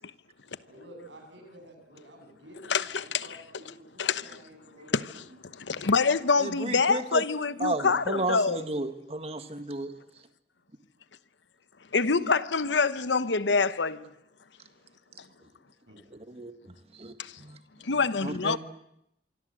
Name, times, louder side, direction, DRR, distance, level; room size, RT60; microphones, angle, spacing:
voice 1, 0.6-5.4 5.7-6.1 15.9-16.0, right 1 dB, 75° right, 7.7 m, -51 dB
voice 2, 2.7-3.6 4.0-4.4 4.9-8.7 11.9-14.1 17.2-17.3 17.8-18.6, left 4 dB, 75° left, 1.0 m, -26 dB
voice 3, 6.4-7.2 7.6-9.9 16.3-16.5 17.0-17.1 17.4-17.6 18.2-18.6, right 2 dB, 35° right, 1.6 m, -32 dB
26.0 x 24.5 x 7.8 m
head